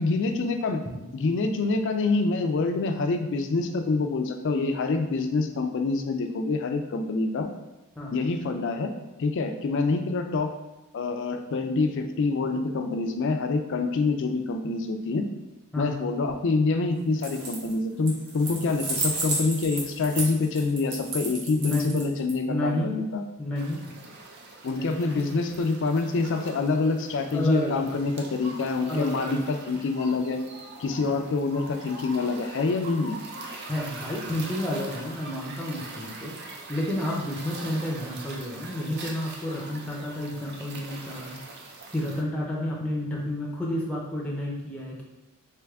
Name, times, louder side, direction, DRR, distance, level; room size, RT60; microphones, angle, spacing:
voice 1, 0.0-0.8 1.1-7.5 8.1-8.9 9.2-10.5 10.9-15.3 15.8-23.2 24.6-30.4 30.8-33.2, left 3 dB, 55° left, 6 dB, 0.4 m, -26 dB
sound 1, 17.1-17.7 18.1-22.3, right 2 dB, 85° right, 1.2 m, -31 dB
voice 2, 21.6-22.0 22.5-22.9 23.4-23.8 24.7-25.2 27.3-28.0 28.9-29.4 33.6-41.4 41.9-45.0, left 1 dB, 5° left, -3 dB, 0.5 m, -31 dB
sound 2, 23.5-42.2, right 3 dB, 50° right, 0.5 m, -42 dB
3.4 x 3.1 x 3.5 m, 1.0 s
head